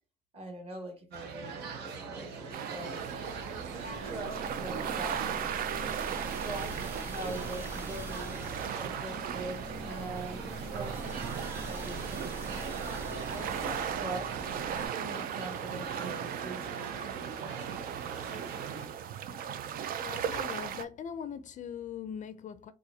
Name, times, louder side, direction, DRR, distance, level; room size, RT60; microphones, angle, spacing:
voice 1, 0.3-3.1 3.7-5.5 6.1-6.8 7.0-8.4 8.8-11.1 11.7-12.6 13.3-14.4 14.7-16.8, right 2 dB, 35° right, 1.4 m, -43 dB
cafe ambience, 1.1-18.9, right 5 dB, 85° right, 0.8 m, -42 dB
sound 1, 2.5-20.9, right 8 dB, 60° right, 0.4 m, -37 dB
sound 2, 2.9-14.9, equal, 15° right, 0.9 m, -44 dB
voice 2, 20.0-22.7, left 8 dB, 50° left, 0.4 m, -41 dB
4.0 x 2.5 x 2.7 m
cardioid pair, 110°, 17 cm